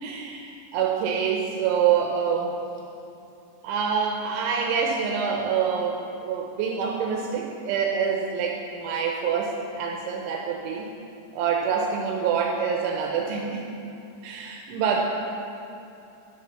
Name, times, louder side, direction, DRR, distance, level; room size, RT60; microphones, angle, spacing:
voice 1, 0.0-2.6 3.6-10.9 11.3-13.6 14.2-15.0, right 6 dB, 80° right, 0 dB, 3.1 m, -26 dB
11.5 x 6.4 x 7.2 m, 2.7 s
omnidirectional pair, 5.5 m